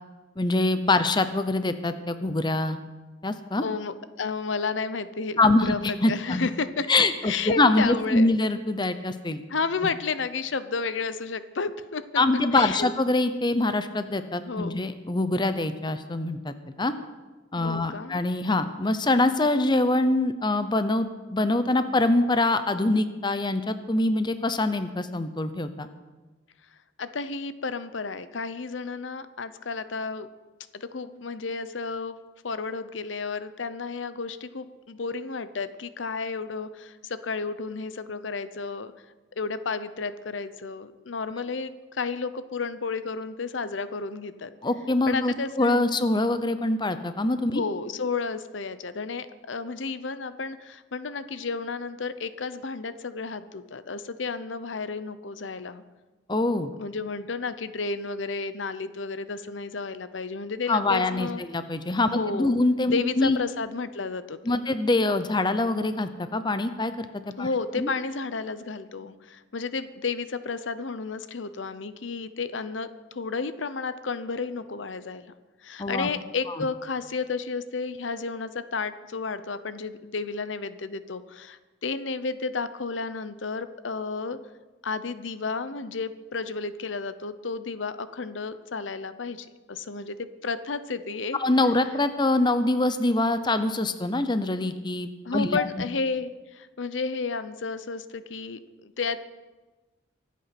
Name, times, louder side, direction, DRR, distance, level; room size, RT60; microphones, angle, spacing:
voice 1, 0.4-2.8 3.2-3.6 5.4-6.5 6.9-9.4 12.2-16.9 17.5-25.9 44.6-47.6 56.3-56.7 60.7-63.4 64.4-67.1 67.4-67.5 67.8-67.9 75.8-76.1 76.6-76.7 91.4-95.7, left 2 dB, 25° left, 11 dB, 0.7 m, -24 dB
voice 2, 3.6-5.8 6.1-6.9 7.2-8.3 9.5-12.0 12.5-12.9 14.5-14.8 17.6-18.1 27.0-30.3 30.7-32.2 32.4-38.9 39.4-44.5 45.1-45.8 47.5-55.8 56.8-61.4 62.1-62.6 62.9-64.6 67.4-75.3 75.6-84.4 84.8-91.4 95.2-99.2, left 4 dB, 80° left, 13 dB, 0.8 m, -32 dB
24.0 x 8.4 x 6.0 m, 1.2 s
head